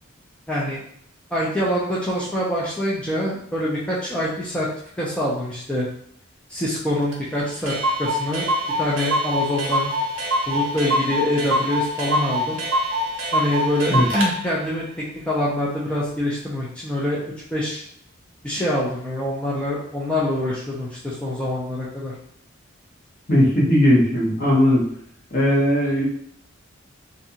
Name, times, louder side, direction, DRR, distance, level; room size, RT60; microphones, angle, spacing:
voice 1, 0.5-0.8 1.3-4.7 5.0-5.9 6.5-7.7 8.0-9.9 10.5-12.6 13.3-17.2 17.5-17.8 18.4-22.1, left 1 dB, 5° left, -7 dB, 0.4 m, -25 dB
Clock, 7.1-7.2 7.4-7.5 7.7-14.3, equal, 75° right, 0.7 m, -24 dB
voice 2, 23.3-24.9 25.3-26.1, equal, 45° left, -5 dB, 1.0 m, -18 dB
2.5 x 2.3 x 2.8 m, 0.65 s
head